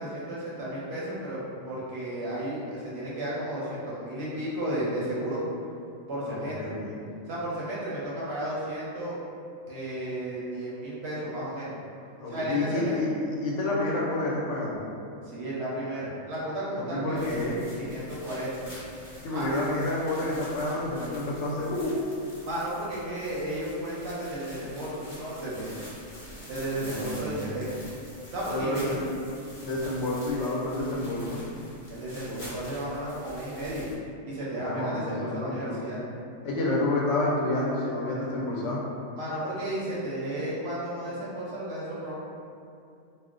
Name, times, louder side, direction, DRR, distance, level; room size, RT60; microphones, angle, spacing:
voice 1, 0.0-5.4 6.1-6.7 7.3-9.2 9.7-11.7 12.3-13.0 15.2-17.3 17.8-18.5 19.3-19.5 22.4-25.7 26.5-27.7 28.3-29.0 31.9-33.9 34.2-36.0 39.2-42.1, right 1 dB, 65° right, -7 dB, 0.8 m, -33 dB
voice 2, 6.2-7.0 12.2-14.9 16.7-17.6 19.2-22.0 26.8-27.5 28.5-29.1 29.6-31.4 34.6-35.8 36.4-38.8, left 2 dB, 70° left, -4 dB, 0.8 m, -29 dB
sound 1, 17.1-33.9, left 1 dB, 30° left, 0.7 m, -46 dB
2.3 x 2.0 x 3.7 m, 2.5 s
omnidirectional pair, 1.4 m